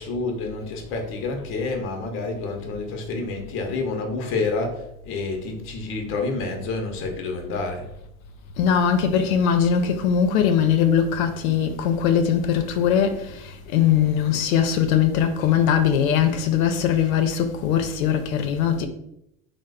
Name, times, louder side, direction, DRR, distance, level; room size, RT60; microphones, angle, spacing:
voice 1, 0.0-7.9, left 3 dB, 30° left, 0.6 m, -28 dB
voice 2, 8.6-18.9, left 8 dB, 75° left, 0.5 m, -21 dB
3.0 x 2.0 x 3.5 m
supercardioid pair, 120°, 42 cm